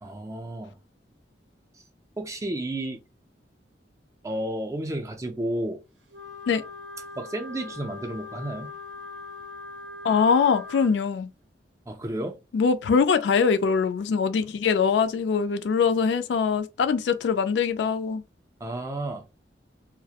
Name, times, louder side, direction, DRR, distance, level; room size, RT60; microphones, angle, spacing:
voice 1, 0.0-0.7 2.2-3.0 4.2-5.8 7.2-8.7 11.9-12.4 18.6-19.2, right 1 dB, 15° right, 0.4 m, -32 dB
Wind instrument woodwind instrument, 6.1-11.0, left 3 dB, 80° right, 0.6 m, -41 dB
voice 2, 10.0-11.3 12.5-18.2, left 5 dB, 70° left, 0.3 m, -23 dB
2.3 x 2.0 x 2.7 m
head